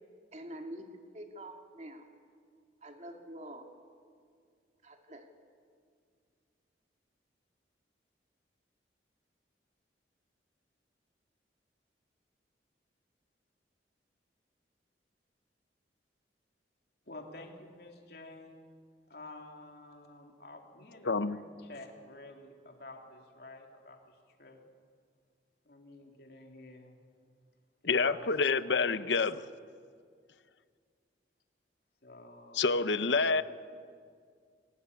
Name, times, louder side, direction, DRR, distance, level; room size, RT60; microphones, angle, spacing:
voice 1, 0.3-2.1 2.8-3.7 4.8-5.3, right 1 dB, 40° right, 4 dB, 2.3 m, -46 dB
voice 2, 17.1-18.6 19.1-24.6 25.7-27.0 27.8-29.3 32.0-33.4, left 2 dB, 60° left, 2 dB, 3.5 m, -50 dB
voice 3, 21.1-21.4 27.9-29.4 32.6-33.4, left 4 dB, 85° left, 13 dB, 0.9 m, -27 dB
28.0 x 19.0 x 9.7 m, 2.1 s
head